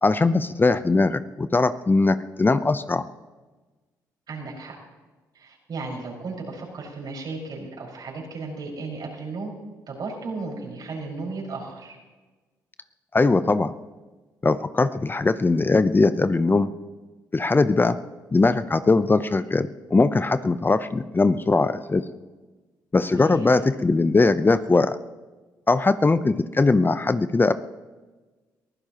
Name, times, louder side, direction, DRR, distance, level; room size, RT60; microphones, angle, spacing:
voice 1, 0.0-3.0 13.1-13.7 14.4-16.7 17.3-18.0 18.3-22.0 22.9-25.0 25.7-27.5, left 3 dB, 25° left, 12 dB, 0.7 m, -20 dB
voice 2, 4.3-4.8 5.3-9.5 9.9-12.0 23.1-23.5, right 3 dB, 60° right, -2 dB, 5.4 m, -35 dB
23.0 x 15.5 x 3.0 m, 1.2 s
supercardioid pair, 55°, 8 cm